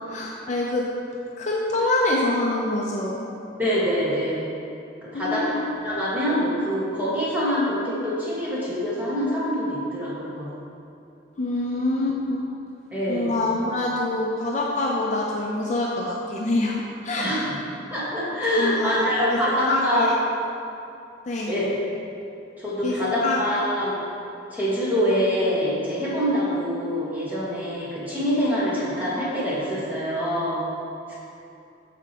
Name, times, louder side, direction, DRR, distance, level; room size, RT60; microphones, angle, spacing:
voice 1, 0.1-0.9 1.4-3.2 5.1-5.6 11.4-12.4 13.1-17.3 18.5-19.4 19.7-20.1 21.3-21.5 22.8-22.9 23.2-23.4, left 2 dB, 35° left, -2 dB, 0.5 m, -25 dB
voice 2, 3.6-4.4 5.0-5.5 5.8-10.5 12.9-13.3 17.2-17.4 17.9-20.1 21.5-21.6 22.6-24.0 24.5-30.6, equal, 10° right, -8 dB, 1.5 m, -25 dB
8.2 x 6.0 x 2.9 m, 2.6 s
head